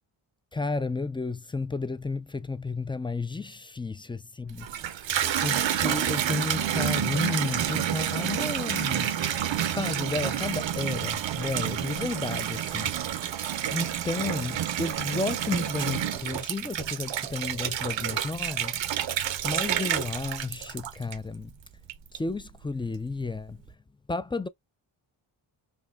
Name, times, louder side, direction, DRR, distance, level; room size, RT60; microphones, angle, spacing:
voice 1, 0.5-5.0 5.4-9.2 9.6-12.9 13.7-19.1 19.4-21.5 22.1-23.6 24.1-24.5, left 3 dB, 10° left, 0.3 m, -32 dB
Water tap faucet / Bathtub (filling or washing), 4.5-21.4 21.9-22.5, right 10 dB, 65° right, 0.6 m, -29 dB
5.1 x 2.6 x 2.3 m
cardioid pair, 55°, 49 cm